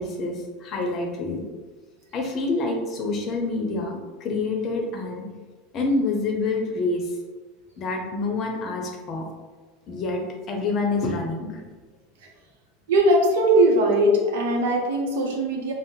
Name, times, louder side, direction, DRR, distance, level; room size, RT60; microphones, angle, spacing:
voice 1, 0.0-1.4 2.1-5.3 5.7-7.2 7.8-9.2 9.9-11.6, left 3 dB, 45° left, 2 dB, 0.6 m, -27 dB
voice 2, 12.9-15.7, right 1 dB, 80° right, 0 dB, 0.6 m, -20 dB
2.6 x 2.0 x 3.7 m, 1.3 s
hypercardioid pair, 105°, 0 cm